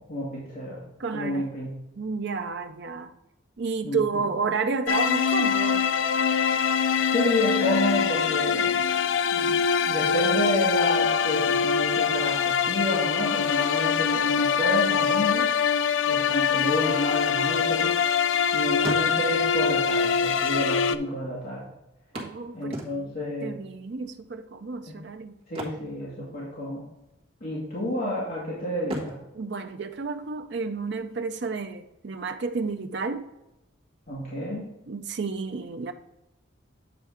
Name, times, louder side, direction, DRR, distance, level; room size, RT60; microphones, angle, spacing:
voice 1, 0.0-0.8 1.1-1.7 3.8-4.2 7.1-8.8 9.3-9.5 9.9-15.5 16.1-17.9 18.5-21.6 22.5-23.6 24.9-25.0 25.5-26.8 27.4-29.2 34.1-34.7, left 1 dB, 45° left, 1.7 m, -30 dB
voice 2, 1.0-1.5 2.0-3.1 3.6-5.8 22.1-25.4 29.3-33.3 34.9-35.9, right 4 dB, 60° right, 0.5 m, -31 dB
sound 1, 4.9-21.0, left 7 dB, 75° left, 0.4 m, -24 dB
sound 2, 18.8-19.6 20.5-20.6 20.8-20.9 22.1-23.3 25.4-26.7 27.0-27.2 27.7-28.3 28.8-30.6 32.5-32.6 33.1-33.2, right 1 dB, 25° right, 1.4 m, -38 dB
8.0 x 4.5 x 4.8 m
head